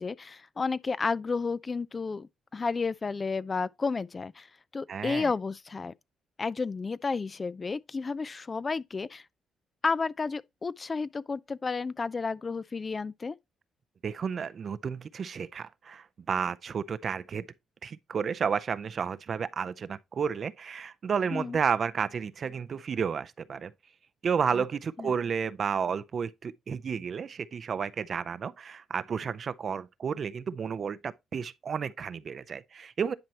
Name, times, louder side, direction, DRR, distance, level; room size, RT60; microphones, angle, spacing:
voice 1, 0.0-4.5 4.7-5.9 6.4-9.2 9.8-13.4 21.3-21.6 24.5-24.6 25.0-25.1, left 4 dB, 30° left, 0.3 m, -32 dB
voice 2, 4.9-5.3 14.0-17.5 17.8-23.7 24.2-33.1, right 6 dB, 50° right, 0.5 m, -32 dB
10.5 x 4.5 x 2.9 m
cardioid pair, 90°, 0 cm